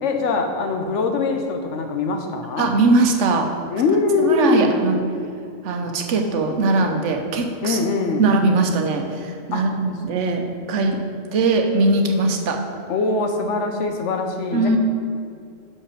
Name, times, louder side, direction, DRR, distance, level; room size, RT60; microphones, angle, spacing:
voice 1, 0.0-2.7 3.7-4.7 7.6-8.2 9.5-9.7 12.9-14.8, left 3 dB, 75° left, 4 dB, 1.1 m, -22 dB
voice 2, 2.6-3.5 4.2-5.0 5.6-7.8 8.2-11.0 11.3-12.6 14.5-14.8, right 3 dB, 80° right, 3 dB, 1.1 m, -20 dB
5.9 x 5.4 x 6.3 m, 2.4 s
omnidirectional pair, 1.3 m